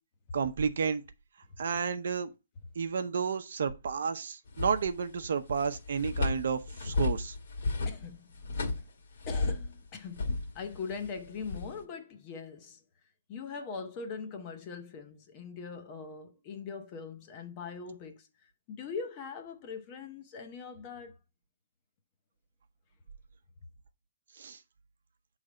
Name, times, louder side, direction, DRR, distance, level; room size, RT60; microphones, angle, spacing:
voice 1, 0.3-1.0 1.6-2.3 2.8-7.4 24.4-24.6, right 6 dB, 60° right, 0.7 m, -31 dB
sound 1, 4.5-5.3 5.6-9.8 10.1-11.8, left 3 dB, 60° left, 1.6 m, -33 dB
voice 2, 7.8-8.3 8.7-8.8 9.3-12.8 13.3-21.2, left 5 dB, 20° left, 0.7 m, -41 dB
7.6 x 3.3 x 4.9 m
hypercardioid pair, 175°, 0 cm